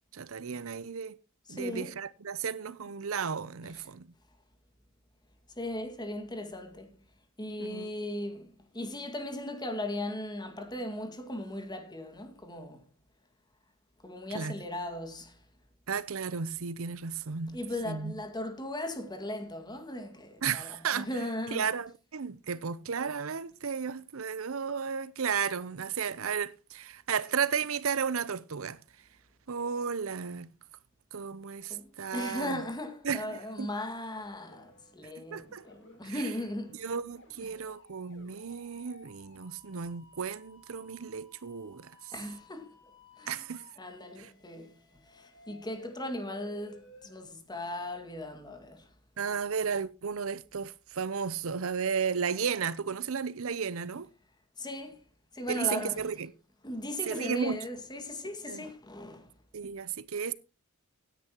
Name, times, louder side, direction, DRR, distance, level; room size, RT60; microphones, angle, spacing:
voice 1, 0.1-1.2 1.5-4.1 7.6-7.9 14.3-14.5 15.9-17.6 17.8-18.2 20.4-21.1 21.5-28.8 29.5-30.5 31.1-32.6 33.0-33.7 35.2-35.6 36.0-36.2 36.8-42.1 43.3-43.6 44.2-44.3 49.2-54.1 55.5-56.3 57.1-57.6 58.5-58.6 59.5-60.3, right 6 dB, 70° right, 0.7 m, -34 dB
voice 2, 1.5-2.0 3.7-3.9 5.6-7.0 7.4-12.8 14.0-15.4 17.5-21.7 31.7-36.8 37.5-37.6 42.1-42.7 43.2-43.4 43.8-44.8 45.1-48.9 49.3-49.4 54.6-55.0 55.3-56.0 56.6-59.3, left 1 dB, 20° left, 2.0 m, -38 dB
sound 1, 34.2-34.9 35.3-47.2, left 2 dB, 60° left, 7.1 m, -57 dB
16.5 x 10.0 x 3.0 m
head